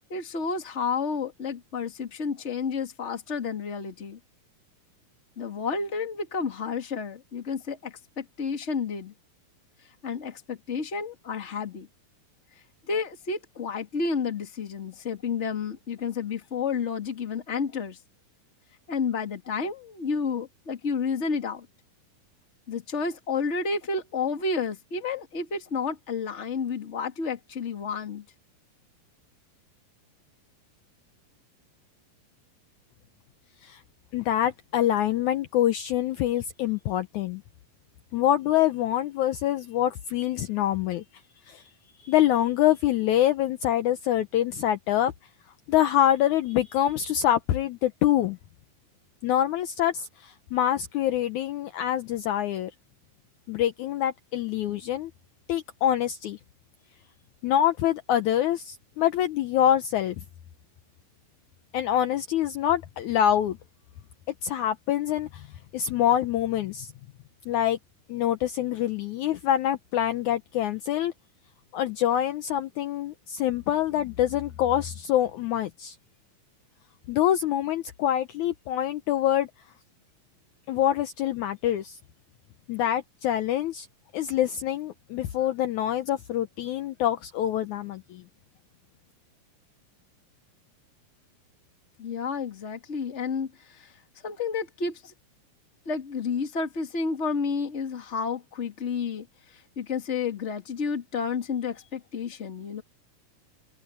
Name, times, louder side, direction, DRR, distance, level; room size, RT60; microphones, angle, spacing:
voice 1, 0.1-4.2 5.4-9.1 10.0-11.9 12.9-18.0 18.9-21.7 22.7-28.2 92.0-93.9 94.2-95.1 95.9-102.8, left 5 dB, 25° left, 1.9 m, -31 dB
voice 2, 34.1-37.4 38.1-41.0 41.5-41.6 42.0-45.1 45.7-48.4 49.2-52.7 53.5-55.1 55.5-56.4 57.4-60.2 61.7-63.6 64.4-65.5 65.7-66.9 67.5-67.8 68.1-71.1 71.7-76.0 77.1-79.5 80.7-82.0 82.7-83.9 84.1-88.2, left 11 dB, 70° left, 2.0 m, -25 dB
open air
omnidirectional pair, 3.9 m